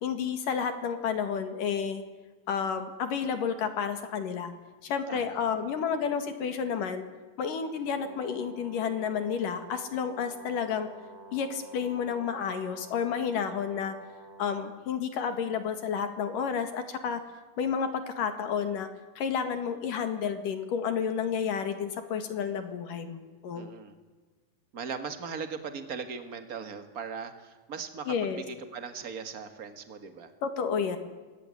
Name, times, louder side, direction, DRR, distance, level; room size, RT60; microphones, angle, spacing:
voice 1, 0.0-2.0 2.5-4.5 4.8-7.0 7.4-10.9 11.3-13.9 14.4-17.2 17.6-18.9 19.2-23.7 28.1-28.4 30.4-31.0, left 7 dB, 60° left, 8 dB, 3.3 m, -31 dB
voice 2, 5.1-5.4 23.5-23.9 24.7-30.3, right 5 dB, 50° right, 8 dB, 1.0 m, -39 dB
Brass instrument, 7.8-14.8, right 2 dB, 70° right, 5.7 m, -49 dB
26.5 x 21.5 x 9.8 m, 1.3 s
omnidirectional pair, 4.5 m